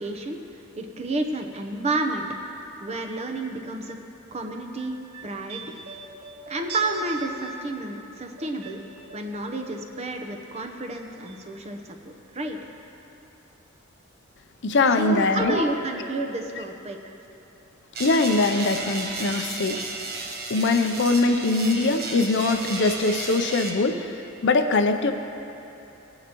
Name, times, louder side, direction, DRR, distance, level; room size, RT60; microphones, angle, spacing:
voice 1, 0.0-2.3 2.8-4.0 4.3-5.0 5.2-5.7 6.5-8.8 9.1-12.0 12.3-12.6 15.0-17.2, right 2 dB, 30° right, 3 dB, 0.8 m, -30 dB
sound 1, 4.5-9.8 10.1-11.0 11.3-11.4, right 4 dB, 90° right, 1.6 m, -43 dB
voice 2, 14.6-15.6 18.0-19.8 20.5-24.1 24.4-25.1, left 3 dB, 55° left, 8 dB, 0.5 m, -22 dB
sound 2, 17.9-23.7, right 3 dB, 50° right, 1.2 m, -33 dB
18.0 x 9.6 x 3.0 m, 2.9 s
head